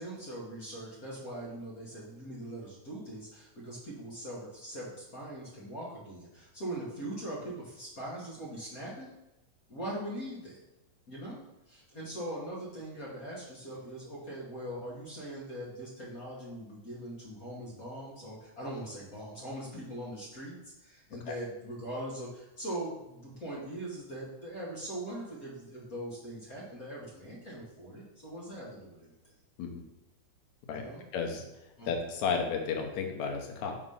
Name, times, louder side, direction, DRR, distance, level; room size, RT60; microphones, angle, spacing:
voice 1, 0.0-9.1 9.7-10.6 11.1-11.4 11.7-29.1 30.7-31.0 31.8-31.9, right 1 dB, 40° left, -6 dB, 1.4 m, -41 dB
voice 2, 31.1-31.4 31.9-33.8, left 5 dB, 75° left, 3 dB, 2.2 m, -32 dB
5.2 x 4.0 x 5.5 m, 0.94 s
omnidirectional pair, 3.3 m